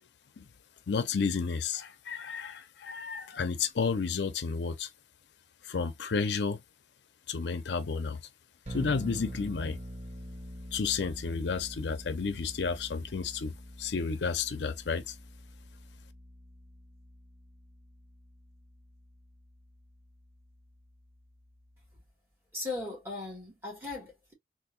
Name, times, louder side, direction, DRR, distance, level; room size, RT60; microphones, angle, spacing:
voice 1, 0.9-4.9 5.6-6.6 7.3-8.2 8.7-9.8 10.7-13.5 13.8-15.2, left 5 dB, 75° left, 0.5 m, -31 dB
sound 1, 8.6-22.1, equal, 40° right, 1.2 m, -46 dB
voice 2, 22.5-24.3, left 3 dB, 15° right, 1.6 m, -38 dB
3.7 x 2.5 x 2.5 m
head